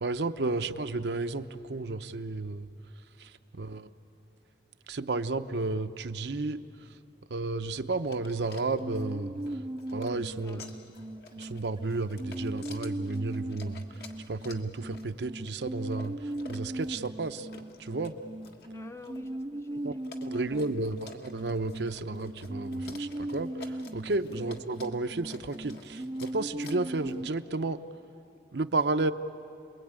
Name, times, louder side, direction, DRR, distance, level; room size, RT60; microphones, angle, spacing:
voice 1, 0.0-2.7 3.2-3.3 3.6-3.9 4.9-6.6 7.3-9.4 9.9-10.6 11.4-13.8 14.3-17.5 17.8-18.1 19.8-19.9 20.2-27.8 28.5-29.1, right 3 dB, 75° right, 8 dB, 0.8 m, -32 dB
sound 1, 8.1-27.3, left 3 dB, 60° left, 1.8 m, -51 dB
sound 2, 8.8-27.3, right 1 dB, 25° right, 0.6 m, -39 dB
voice 2, 10.4-10.8 18.7-20.0 20.3-20.7 24.3-24.6, left 3 dB, 15° left, 9 dB, 0.6 m, -50 dB
29.0 x 21.0 x 8.9 m, 2.6 s
head